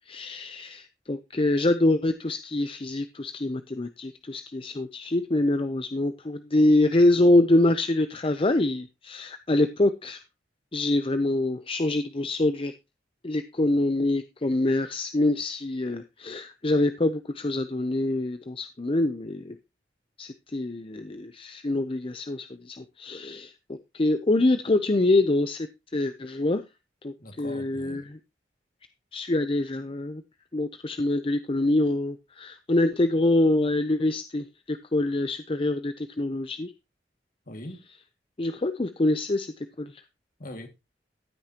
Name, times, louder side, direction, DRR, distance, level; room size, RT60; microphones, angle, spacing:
voice 1, 0.1-10.2 10.7-12.7 13.2-19.6 20.2-23.5 23.9-25.7 25.9-26.6 27.0-28.2 29.1-30.2 30.5-36.7 38.4-39.5 39.8-39.9, left 2 dB, 30° left, 0.6 m, -25 dB
voice 2, 27.2-28.1 37.5-37.8 40.4-40.7, left 1 dB, 50° left, 2.1 m, -41 dB
14.5 x 9.0 x 2.9 m
head